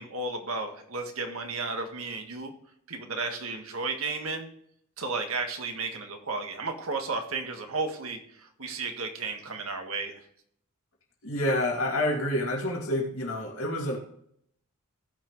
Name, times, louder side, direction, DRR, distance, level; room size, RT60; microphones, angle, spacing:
voice 1, 0.0-2.5 2.9-4.5 5.0-10.1, right 3 dB, 70° right, 4 dB, 1.6 m, -33 dB
voice 2, 11.2-14.0, left 1 dB, 70° left, -1 dB, 2.7 m, -28 dB
17.0 x 5.8 x 3.2 m, 0.69 s
head